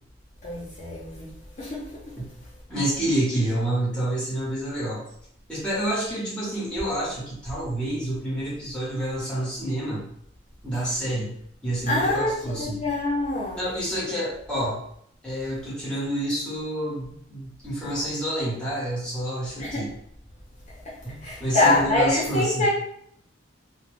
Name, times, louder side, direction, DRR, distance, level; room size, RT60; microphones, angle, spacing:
voice 1, 0.4-1.3 1.6-1.9 11.9-13.6 19.6-19.9 21.2-22.7, left 2 dB, 40° left, -6 dB, 0.7 m, -25 dB
voice 2, 2.7-5.0 5.5-10.0 10.6-11.3 11.6-12.8 13.5-14.8 15.2-19.9 21.0-22.7, right 1 dB, 5° left, -7 dB, 1.1 m, -28 dB
2.3 x 2.3 x 3.3 m, 0.69 s
head